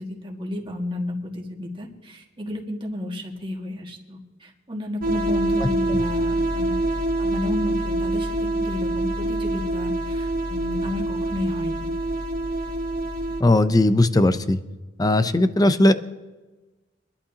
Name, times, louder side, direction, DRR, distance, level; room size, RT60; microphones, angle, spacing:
voice 1, 0.0-6.8 7.2-8.3 8.5-11.9, left 1 dB, 30° right, 0 dB, 2.0 m, -32 dB
sound 1, 5.0-13.4, right 1 dB, 50° right, 1.0 m, -25 dB
voice 2, 13.4-14.6 15.0-15.9, left 1 dB, 20° left, 11 dB, 0.6 m, -18 dB
25.5 x 11.5 x 2.9 m, 1.2 s
head